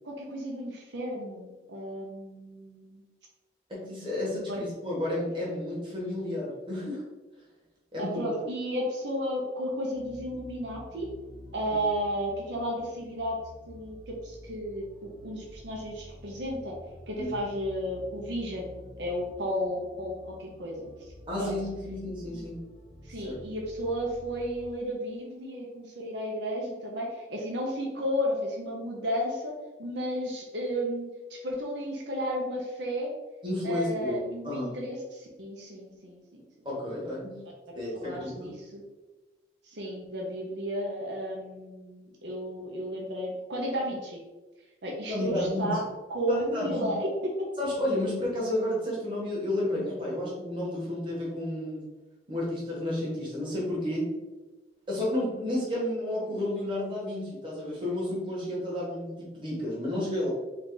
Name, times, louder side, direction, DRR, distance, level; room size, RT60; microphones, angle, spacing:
voice 1, 0.0-3.0 4.5-4.6 8.0-11.1 11.5-13.4 13.7-16.7 17.1-20.9 21.4-21.5 23.0-29.5 29.8-33.1 33.6-36.4 37.7-38.8 39.6-44.2 44.8-45.8 46.1-47.1, equal, 80° right, -2 dB, 0.8 m, -33 dB
voice 2, 3.7-7.0 7.9-8.2 17.2-17.3 21.3-22.6 23.2-23.4 33.4-34.7 36.6-37.4 37.7-38.5 45.1-45.8 46.3-46.9 47.6-51.8 52.3-54.1 54.9-60.3, left 1 dB, 30° right, -5 dB, 1.4 m, -31 dB
sound 1, 9.9-24.6, left 1 dB, 80° left, 0.8 m, -49 dB
4.1 x 2.5 x 3.8 m, 1.2 s
head